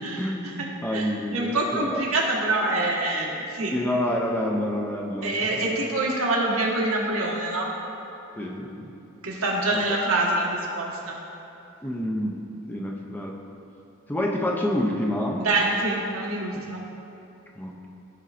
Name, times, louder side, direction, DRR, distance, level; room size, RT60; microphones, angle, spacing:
voice 1, 0.2-2.0 3.7-5.7 8.4-8.9 11.8-12.4 12.7-13.3 14.1-15.5 16.5-16.7 17.6-17.9, left 1 dB, 10° left, -1 dB, 0.5 m, -28 dB
voice 2, 0.9-3.7 5.2-7.7 9.2-11.2 15.4-16.8, right 2 dB, 80° right, -2 dB, 1.4 m, -25 dB
15.5 x 5.2 x 2.5 m, 2.9 s
head